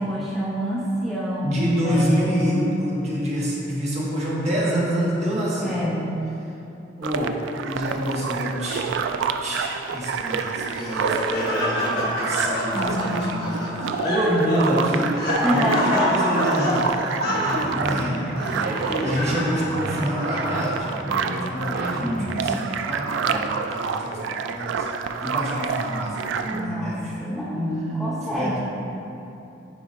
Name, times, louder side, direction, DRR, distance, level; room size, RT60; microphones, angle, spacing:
voice 1, 0.0-2.7 5.6-6.1 12.7-13.7 15.4-16.4 17.4-17.8 18.7-19.4 22.0-22.4 26.5-28.6, equal, ahead, -9 dB, 0.7 m, -27 dB
voice 2, 1.4-5.8 7.0-7.4 7.7-8.9 9.4-15.2 15.5-16.9 17.6-18.3 19.0-21.0 21.5-27.2 28.2-28.6, equal, 40° right, -6 dB, 1.4 m, -27 dB
sound 1, 7.0-26.7, right 6 dB, 80° right, 0.3 m, -29 dB
Laughter, 10.3-20.9, left 1 dB, 60° left, 1.3 m, -27 dB
sound 2, 17.2-22.3, right 1 dB, 60° right, 0.9 m, -33 dB
8.6 x 5.0 x 2.6 m, 2.8 s
head